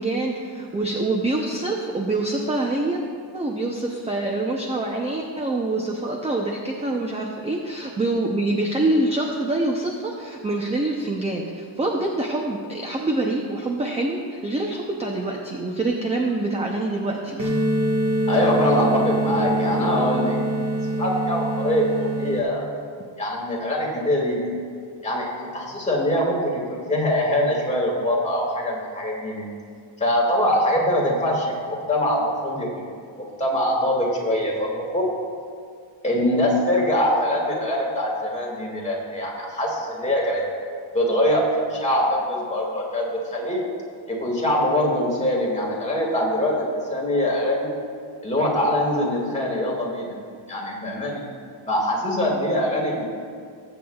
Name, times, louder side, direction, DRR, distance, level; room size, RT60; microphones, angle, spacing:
voice 1, 0.0-3.0 3.3-17.5, right 2 dB, 15° right, 0 dB, 0.6 m, -25 dB
sound 1, 17.4-22.4, right 1 dB, 30° right, 1.5 m, -24 dB
voice 2, 18.3-20.4 21.0-22.6 23.2-24.5 25.0-29.5 30.0-32.9 33.4-35.1 36.0-40.4 40.9-43.7 44.1-47.7 48.2-50.1 50.5-51.2 51.7-53.1, left 1 dB, 15° left, -3 dB, 2.0 m, -23 dB
20.0 x 8.0 x 2.3 m, 2.3 s
wide cardioid pair, 155°, 47 cm